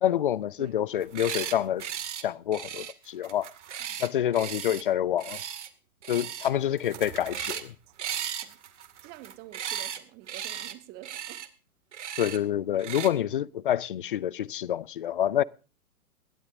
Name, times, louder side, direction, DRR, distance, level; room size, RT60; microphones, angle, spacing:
voice 1, 0.0-1.9 2.2-3.5 4.0-5.4 6.1-7.5 12.2-15.4, left 10 dB, 35° left, 0.6 m, -27 dB
sound 1, 1.0-1.5 1.8-2.2 2.5-4.8 5.2-5.7 6.0-6.5 6.8-7.7 8.0-10.0 10.3-10.7 11.0-11.5 11.9-12.4 12.8-13.1, right 9 dB, 50° right, 2.4 m, -36 dB
voice 2, 3.8-4.3 7.2-7.6 8.4-8.6 9.0-11.4, right 16 dB, 20° right, 1.2 m, -48 dB
21.0 x 16.5 x 2.7 m
figure-of-eight pair, 115°, 44 cm